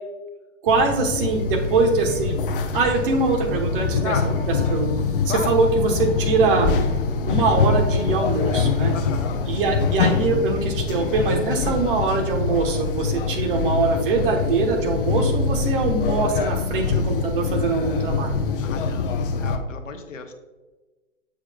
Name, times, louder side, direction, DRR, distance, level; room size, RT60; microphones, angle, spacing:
voice 1, 0.6-2.4 2.7-4.9 5.3-6.7 7.3-8.9 9.4-18.3, right 4 dB, 45° right, 3 dB, 1.2 m, -23 dB
sound 1, 0.7-19.6, left 5 dB, 45° left, 0.6 m, -24 dB
voice 2, 8.9-9.4 18.6-20.3, left 6 dB, 75° left, 6 dB, 0.9 m, -33 dB
7.3 x 6.4 x 2.3 m, 1.2 s
figure-of-eight pair, 125°, 38 cm